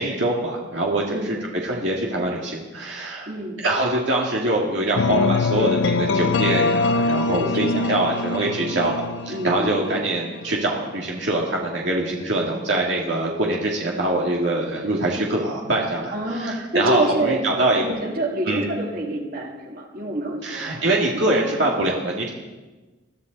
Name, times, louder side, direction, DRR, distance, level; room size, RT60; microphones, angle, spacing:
voice 1, 0.0-1.4 1.6-3.3 3.6-18.0 18.5-18.6 20.4-22.3, right 1 dB, 70° right, -3 dB, 2.1 m, -24 dB
voice 2, 3.3-3.6 7.3-8.0 9.3-10.0 16.1-17.4 17.8-20.9, right 1 dB, 50° right, 0 dB, 2.6 m, -27 dB
sound 1, 5.0-10.9, left 3 dB, 75° left, 0.5 m, -24 dB
22.0 x 13.5 x 4.0 m, 1.2 s
head